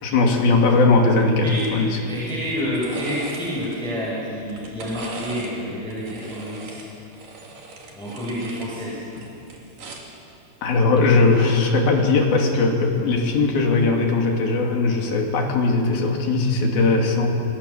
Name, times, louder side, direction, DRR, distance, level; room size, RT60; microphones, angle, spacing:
voice 1, 0.0-2.0 10.6-17.3, left 3 dB, 60° left, 1 dB, 4.2 m, -19 dB
sound 1, 1.5-1.7 2.1-3.8 4.4-5.5 5.9-8.7 9.0-10.2 11.3-11.5, right 3 dB, 50° right, 4.1 m, -39 dB
voice 2, 2.0-6.8 7.9-9.0, equal, ahead, -7 dB, 6.4 m, -29 dB
27.5 x 22.0 x 7.3 m, 2.6 s
omnidirectional pair, 5.2 m